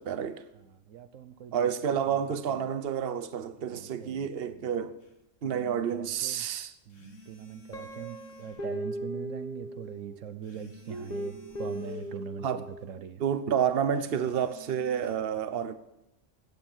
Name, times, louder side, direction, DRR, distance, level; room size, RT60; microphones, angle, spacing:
voice 1, 0.0-0.4 1.5-4.9 5.4-6.7 12.4-12.6 13.2-15.7, right 8 dB, 55° right, 1.0 m, -29 dB
voice 2, 0.5-2.2 2.5-2.7 3.6-4.7 5.4-6.5 6.9-13.2, right 8 dB, 85° right, 1.2 m, -42 dB
sound 1, 5.0-5.1 6.9-8.7 10.4-12.2 13.9-15.2, right 1 dB, 80° left, 2.3 m, -52 dB
Guitar, 7.7-10.2 10.9-12.8, equal, 35° left, 1.4 m, -38 dB
15.5 x 9.0 x 7.3 m
omnidirectional pair, 1.3 m